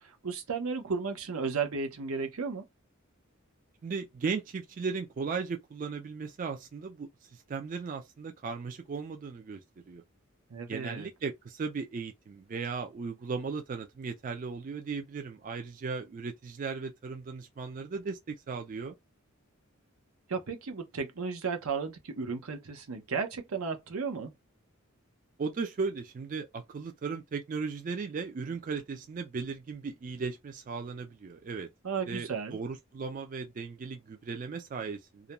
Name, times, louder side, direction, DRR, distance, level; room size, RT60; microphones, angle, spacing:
voice 1, 0.0-2.6 10.5-11.1 20.3-24.3 31.8-32.6, right 5 dB, 85° right, 0.7 m, -34 dB
voice 2, 3.8-9.6 9.9-10.0 10.7-19.0 25.4-31.7 32.1-35.3, right 5 dB, 40° right, 0.3 m, -36 dB
2.4 x 2.1 x 2.9 m
head